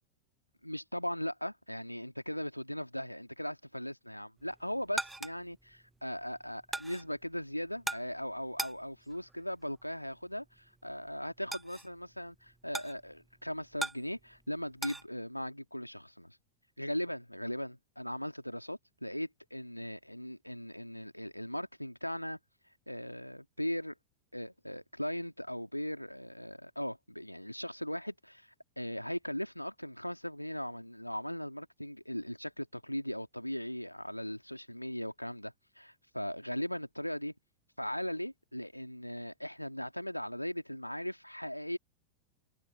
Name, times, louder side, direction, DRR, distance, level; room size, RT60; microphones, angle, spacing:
voice 1, 0.6-16.4 16.8-22.4 22.9-23.9 24.3-37.3 37.8-41.8, equal, 90° left, 2.3 m, -38 dB
sound 1, 4.4-15.1, right 2 dB, 5° right, 0.8 m, -43 dB
figure-of-eight pair, 90°, 0 cm